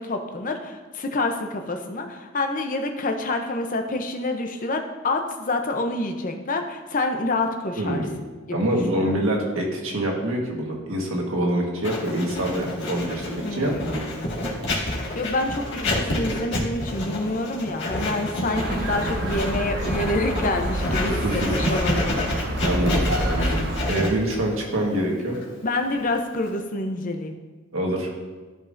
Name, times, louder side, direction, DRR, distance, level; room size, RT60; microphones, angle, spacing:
voice 1, 0.0-8.0 8.5-8.6 9.0-9.1 13.4-14.6 14.9-22.3 25.6-27.3, left 2 dB, 40° left, 5 dB, 0.7 m, -27 dB
voice 2, 7.7-8.1 8.5-14.0 21.0-21.7 22.6-25.4 27.7-28.2, right 1 dB, 80° right, 0 dB, 1.5 m, -25 dB
Writing, 11.8-26.6, left 1 dB, 60° left, 1.9 m, -29 dB
sound 1, 18.5-23.9, right 1 dB, 50° right, 0.8 m, -27 dB
13.0 x 5.4 x 2.6 m, 1.3 s
head